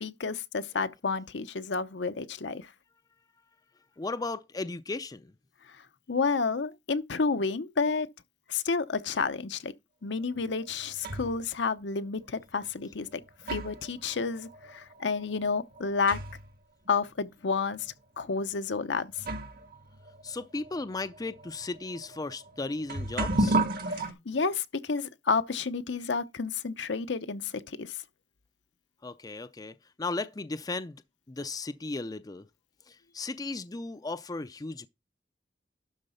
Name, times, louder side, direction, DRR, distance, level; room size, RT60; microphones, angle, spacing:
voice 1, 0.0-2.7 6.1-8.1 8.5-9.7 10.0-13.2 13.5-16.2 16.9-19.2 23.9-28.0, left 4 dB, 75° left, 0.8 m, -30 dB
voice 2, 4.0-5.3 20.2-23.6 29.0-31.0 31.3-32.5 32.9-34.9, left 3 dB, 20° left, 0.5 m, -36 dB
sound 1, 10.4-11.4 12.4-12.5 13.1-16.6 16.9-17.0 17.8-17.9 18.7-18.8 19.2-24.1, right 1 dB, 55° right, 1.6 m, -33 dB
12.0 x 4.1 x 5.6 m
head